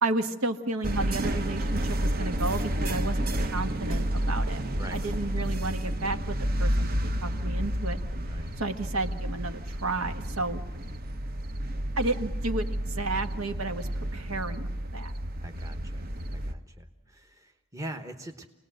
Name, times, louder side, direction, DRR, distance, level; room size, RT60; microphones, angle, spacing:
voice 1, 0.0-4.6 4.9-8.0 8.6-10.6 12.0-15.1, right 2 dB, 75° right, 7 dB, 1.6 m, -32 dB
sound 1, 0.8-16.5, right 1 dB, 45° right, 1.0 m, -30 dB
voice 2, 8.2-8.5 15.4-16.0 16.3-18.5, right 1 dB, 15° right, 3 dB, 1.1 m, -42 dB
27.5 x 19.0 x 7.8 m, 1.0 s
head